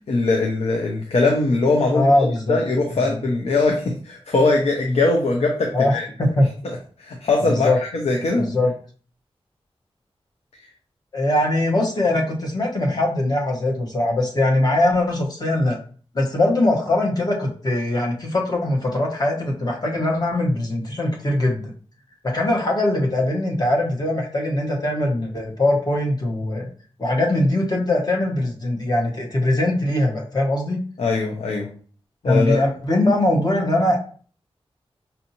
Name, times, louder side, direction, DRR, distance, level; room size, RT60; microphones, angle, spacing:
voice 1, 0.1-6.1 6.6-8.5 31.0-31.7 32.2-32.6, left 3 dB, 85° left, 1 dB, 0.6 m, -21 dB
voice 2, 1.9-2.6 5.7-6.5 7.5-7.8 8.4-8.7 11.1-15.8 16.1-21.7 22.3-26.7 27.0-30.8 32.2-34.0, left 1 dB, 40° left, -1 dB, 1.1 m, -21 dB
5.5 x 2.6 x 2.8 m, 0.43 s
wide cardioid pair, 90°, 10 cm